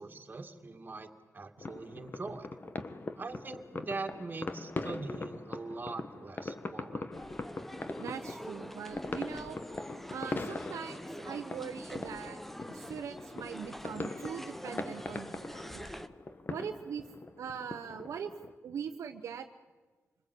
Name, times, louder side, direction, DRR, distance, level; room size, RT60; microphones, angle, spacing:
voice 1, 0.0-2.5 3.2-7.1, right 3 dB, 40° right, 4 dB, 2.3 m, -42 dB
sound 1, 1.6-18.5, left 3 dB, 40° left, 1.5 m, -42 dB
sound 2, 7.1-16.1, equal, 5° left, 1.1 m, -45 dB
voice 2, 8.0-9.6 10.1-12.4 12.7-16.0 16.5-17.0 17.4-18.3 18.6-19.5, right 7 dB, 90° right, 6 dB, 1.0 m, -41 dB
27.0 x 20.5 x 8.5 m, 1.3 s
cardioid pair, 70°, 5 cm